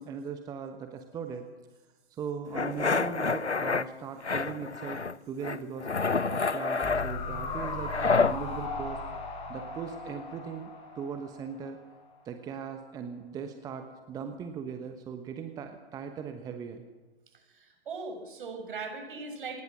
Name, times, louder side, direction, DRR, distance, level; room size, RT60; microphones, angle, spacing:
voice 1, 0.0-1.5 2.2-5.0 5.3-5.9 6.3-9.0 9.5-11.8 12.2-16.8, right 6 dB, 10° right, 7 dB, 1.1 m, -39 dB
sound 1, 2.5-3.8 4.2-5.1 5.4-8.4, left 4 dB, 90° left, 0.8 m, -28 dB
sound 2, 6.8-12.1 12.3-12.4, left 3 dB, 20° left, 4.5 m, -38 dB
voice 2, 17.5-19.6, right 4 dB, 50° right, 5 dB, 6.8 m, -39 dB
26.5 x 19.0 x 6.3 m, 1.2 s
figure-of-eight pair, 125°, 33 cm